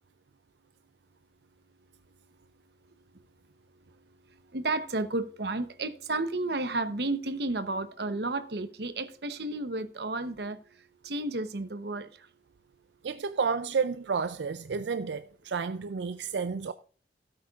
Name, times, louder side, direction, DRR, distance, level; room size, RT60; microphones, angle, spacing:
voice 1, 4.3-12.3, right 2 dB, 70° right, 0.9 m, -32 dB
voice 2, 13.0-16.7, right 5 dB, 85° right, 0.4 m, -31 dB
16.5 x 8.7 x 2.4 m
head